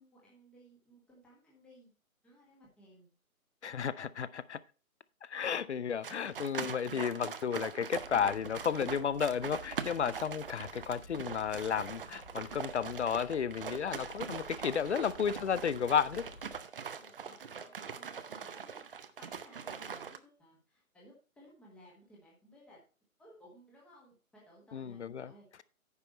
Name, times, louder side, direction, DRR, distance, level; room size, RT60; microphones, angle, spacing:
voice 1, 0.0-1.9 2.2-3.1 16.9-18.8 19.2-22.8 23.2-25.6, equal, 5° left, -4 dB, 1.4 m, -59 dB
voice 2, 3.6-4.6 5.2-16.2 24.7-25.3, left 7 dB, 55° left, 18 dB, 0.6 m, -33 dB
sound 1, 6.0-20.2, right 6 dB, 40° right, 0.7 m, -42 dB
sound 2, 8.0-16.6, left 1 dB, 85° left, 3.5 m, -54 dB
9.6 x 5.9 x 4.2 m, 0.35 s
figure-of-eight pair, 145°, 42 cm